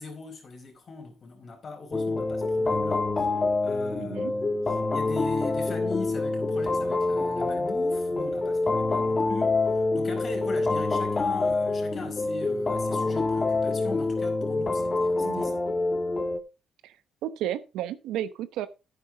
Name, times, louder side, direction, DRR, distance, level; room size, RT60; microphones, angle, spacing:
voice 1, 0.0-3.3 3.6-15.6, left 3 dB, 50° left, 4.7 m, -40 dB
sound 1, 1.9-16.4, left 3 dB, 35° left, 1.5 m, -26 dB
voice 2, 4.0-4.3 15.2-15.5 16.8-16.9 17.2-18.7, right 12 dB, 80° right, 0.9 m, -32 dB
10.0 x 9.4 x 3.6 m
supercardioid pair, 60°, 0 cm